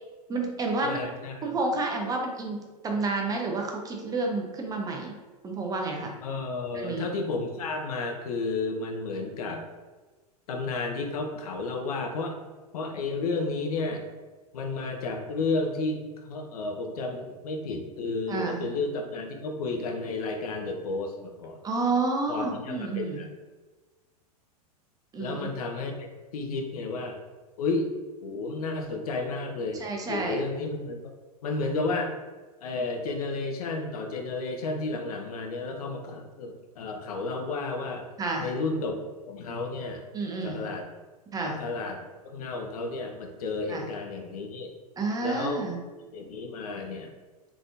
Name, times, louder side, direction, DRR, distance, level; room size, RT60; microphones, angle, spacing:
voice 1, 0.3-1.1 1.4-5.1 5.4-6.1 6.7-7.1 18.3-18.7 21.6-23.2 25.1-25.5 29.7-30.4 38.2-38.5 40.1-40.7 41.3-41.6 43.7-43.9 45.0-45.8, right 3 dB, 20° right, 1 dB, 0.7 m, -30 dB
voice 2, 0.8-1.5 6.2-9.6 10.5-12.4 12.7-14.0 14.5-21.6 22.3-23.3 25.2-27.2 27.6-27.9 28.2-29.8 30.1-31.1 31.4-32.1 32.6-38.0 38.4-39.0 39.3-40.0 40.4-40.9 41.4-44.8 45.2-45.6 46.1-47.1, left 3 dB, 65° left, 4 dB, 0.7 m, -32 dB
3.6 x 3.4 x 2.5 m, 1.3 s
hypercardioid pair, 100°, 20 cm